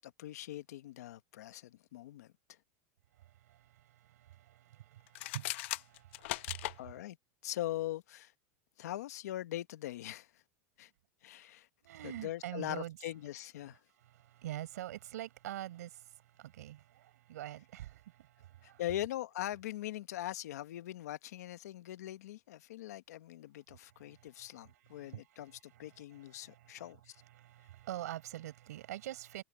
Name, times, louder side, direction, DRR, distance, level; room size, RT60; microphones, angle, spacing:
voice 1, 0.0-2.6 6.8-7.2 7.4-8.3 8.8-10.4 10.8-10.9 11.2-11.7 12.0-13.8 18.6-27.2, left 14 dB, 80° left, 1.2 m, -42 dB
voice 2, 3.1-7.0 11.8-13.0 13.9-18.8 23.7-29.4, right 13 dB, 85° right, 4.9 m, -46 dB
sound 1, 5.1-6.8, left 18 dB, 50° left, 0.7 m, -38 dB
supercardioid pair, 180°, 9 cm